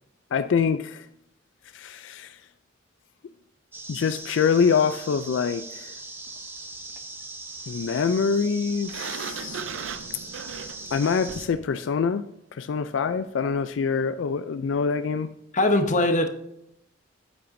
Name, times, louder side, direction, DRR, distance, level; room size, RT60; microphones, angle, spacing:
voice 1, 0.3-1.1 1.7-2.4 3.9-5.9 7.7-9.6 10.9-12.2 12.5-15.3, left 6 dB, 75° left, 10 dB, 0.4 m, -25 dB
sound 1, 3.7-11.5, right 2 dB, 10° right, 0.8 m, -40 dB
Sliding door, 8.9-11.6, right 6 dB, 85° right, 0.5 m, -37 dB
voice 2, 15.5-16.3, left 1 dB, 40° left, 7 dB, 0.9 m, -21 dB
8.6 x 8.2 x 2.6 m, 0.76 s
head